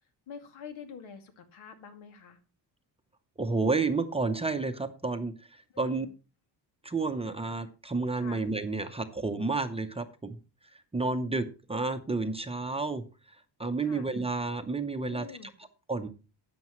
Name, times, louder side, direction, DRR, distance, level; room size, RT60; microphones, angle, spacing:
voice 1, 0.3-2.4 5.7-6.1 8.2-8.4 13.8-14.1 15.0-15.5, left 6 dB, 80° left, 5 dB, 2.5 m, -46 dB
voice 2, 3.4-6.1 6.8-10.4 10.9-13.0 13.6-15.2 15.9-16.1, right 3 dB, 15° right, 6 dB, 0.7 m, -30 dB
13.0 x 9.4 x 3.1 m, 0.33 s
cardioid pair, 170°, 46 cm